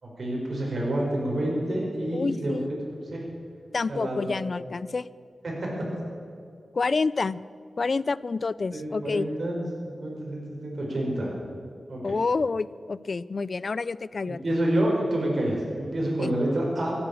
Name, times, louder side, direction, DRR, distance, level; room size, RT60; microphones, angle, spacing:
voice 1, 0.0-2.6 3.0-3.2 3.9-4.4 5.4-5.9 8.7-11.3 11.9-12.2 14.3-16.9, right 1 dB, 60° right, -2 dB, 5.0 m, -28 dB
voice 2, 2.1-2.7 3.7-5.1 6.7-7.4 7.8-9.3 12.0-14.4 16.2-16.3, left 4 dB, 55° left, 19 dB, 0.4 m, -28 dB
15.5 x 8.9 x 8.4 m, 2.3 s
cardioid pair, 65°, 0 cm